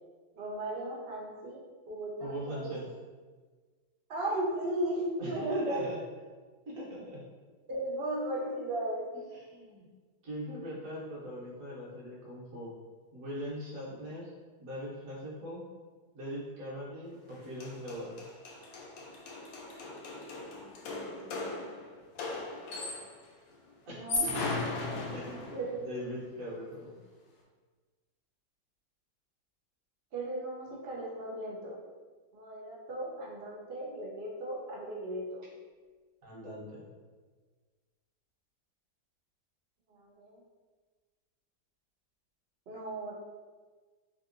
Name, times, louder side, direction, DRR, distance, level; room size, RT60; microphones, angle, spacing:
voice 1, 0.4-1.6 1.9-2.8 4.1-5.8 7.7-9.1 21.2-21.7 23.9-24.5 24.9-25.8 30.1-31.8 32.3-35.5 39.9-40.3 42.7-43.1, right 1 dB, 80° right, -3 dB, 0.5 m, -36 dB
voice 2, 2.2-2.8 5.2-6.0 6.7-7.3 9.3-9.8 10.2-12.7 13.1-14.3 14.6-15.6 16.1-18.2 23.9-24.0 25.1-27.0 36.2-36.8, equal, 55° right, -6 dB, 1.2 m, -41 dB
sound 1, 17.3-17.4 17.6-23.2 23.9-25.7, left 2 dB, 85° left, 1.3 m, -37 dB
3.5 x 2.7 x 2.5 m, 1.4 s
omnidirectional pair, 1.9 m